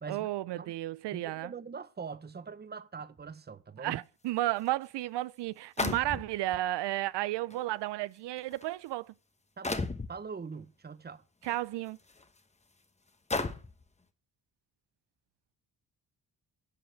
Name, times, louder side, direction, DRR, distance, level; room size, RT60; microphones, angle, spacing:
voice 1, 0.1-1.5 3.8-9.1 11.4-12.0, right 16 dB, 85° right, 0.5 m, -33 dB
voice 2, 1.1-4.0 9.6-11.2, right 5 dB, 25° right, 0.9 m, -43 dB
sound 1, 4.7-4.8 5.8-6.6 7.5-7.6 8.4-8.6 9.6-10.1 11.4-11.6 12.2-12.3 13.3-13.8, left 3 dB, 15° left, 1.1 m, -33 dB
11.5 x 7.2 x 4.6 m
cardioid pair, 100°, 41 cm